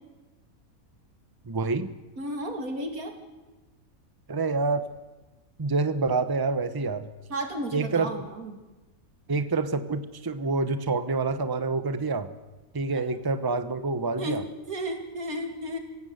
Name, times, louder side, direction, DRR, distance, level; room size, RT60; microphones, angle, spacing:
voice 1, 1.5-1.9 4.3-4.9 5.6-7.1 7.7-8.1 9.3-12.3 12.7-14.4, right 3 dB, 20° right, 11 dB, 0.9 m, -27 dB
voice 2, 2.2-3.1 7.3-8.6 12.9-13.0 14.2-15.8, right 1 dB, 85° right, 5 dB, 3.2 m, -33 dB
26.5 x 16.5 x 8.0 m, 1.1 s
omnidirectional pair, 1.5 m